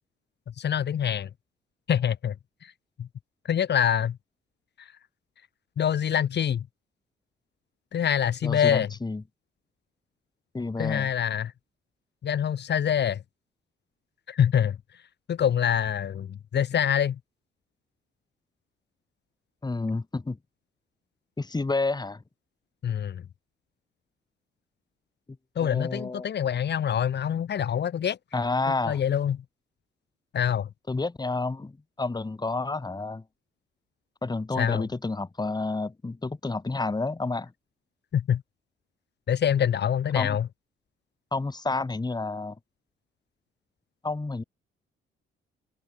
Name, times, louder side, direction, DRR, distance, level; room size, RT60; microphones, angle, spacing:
voice 1, 0.6-1.3 1.9-2.4 2.6-2.7 3.0-3.1 3.4-4.2 4.8-4.9 5.8-6.7 7.9-8.9 10.8-11.5 12.2-13.2 14.3-14.8 15.3-17.2 22.8-23.2 25.6-28.2 28.8-29.4 30.3-30.7 34.6-34.9 38.1-38.4 39.3-40.5, left 9 dB, 60° left, 4.1 m, -25 dB
voice 2, 8.4-9.2 10.5-11.1 19.6-20.4 21.4-22.2 25.6-26.3 28.3-29.0 30.9-33.2 34.2-37.5 40.1-40.4 41.3-42.6 44.0-44.4, left 3 dB, 20° left, 5.2 m, -30 dB
cardioid pair, 90°, 20 cm